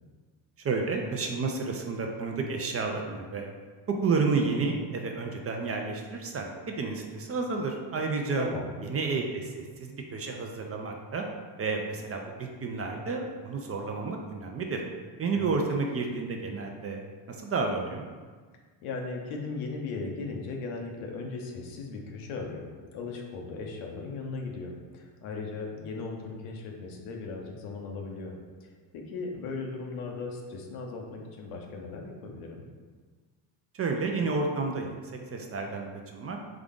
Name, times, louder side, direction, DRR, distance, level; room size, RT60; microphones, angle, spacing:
voice 1, 0.6-3.5 3.9-8.5 8.8-11.3 11.6-14.8 15.2-17.0 17.3-18.1 33.7-35.0 35.3-36.4, right 4 dB, 30° right, 2 dB, 0.5 m, -31 dB
voice 2, 8.4-8.8 15.3-15.6 18.8-28.3 28.6-32.7, left 3 dB, 85° left, 1 dB, 1.0 m, -37 dB
3.7 x 3.6 x 3.6 m, 1.5 s
cardioid pair, 105°, 49 cm